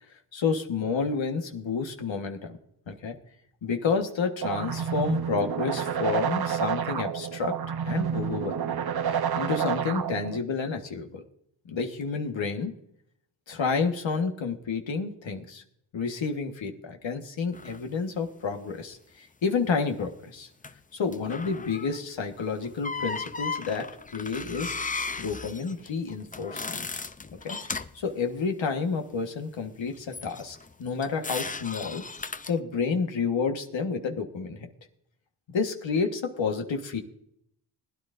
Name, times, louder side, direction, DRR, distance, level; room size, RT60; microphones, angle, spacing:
voice 1, 0.3-2.6 2.9-3.2 3.6-7.6 7.8-8.8 9.1-11.2 11.7-12.7 13.5-15.6 15.9-20.5 20.9-27.0 27.4-27.6 27.9-32.0 32.5-34.7 35.5-37.0, left 5 dB, 75° left, 5 dB, 1.5 m, -30 dB
sound 1, 4.4-10.4, right 8 dB, 55° right, 0.9 m, -29 dB
sound 2, 17.5-17.8 20.6-20.8 21.1-22.0 22.6-28.0 30.1-32.6, left 4 dB, 20° left, 0.6 m, -36 dB
20.5 x 10.5 x 2.6 m, 0.72 s
cardioid pair, 50°, 46 cm